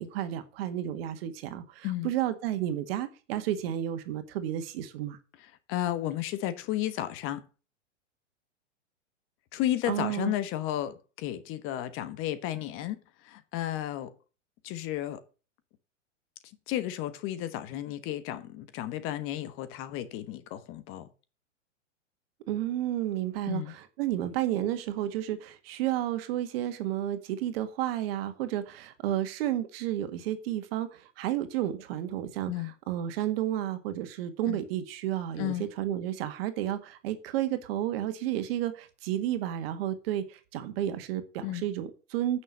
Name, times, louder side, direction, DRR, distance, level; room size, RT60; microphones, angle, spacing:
voice 1, 0.0-5.2 9.9-10.3 22.5-32.5 32.9-42.4, right 12 dB, 55° right, 1.8 m, -31 dB
voice 2, 5.4-7.4 9.5-14.1 14.6-15.2 16.7-21.1 23.5-23.7 32.5-32.7 34.4-34.6 35.4-35.7 41.4-41.6, left 13 dB, 35° left, 1.2 m, -33 dB
9.2 x 6.4 x 7.5 m
hypercardioid pair, 125°, 36 cm